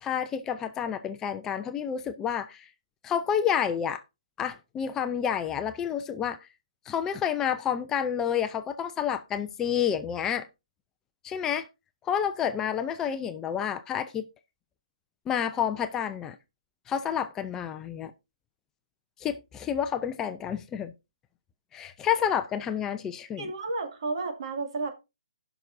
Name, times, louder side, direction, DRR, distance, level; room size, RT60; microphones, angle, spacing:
voice 1, 0.0-2.7 3.0-4.0 4.4-6.5 6.9-10.5 11.2-11.7 12.0-14.2 15.3-16.4 16.9-18.1 19.2-20.9 21.7-23.4, left 8 dB, 15° left, 0.5 m, -29 dB
voice 2, 23.4-24.9, right 3 dB, 55° right, 2.2 m, -32 dB
17.5 x 6.0 x 2.6 m
hypercardioid pair, 150°, 4 cm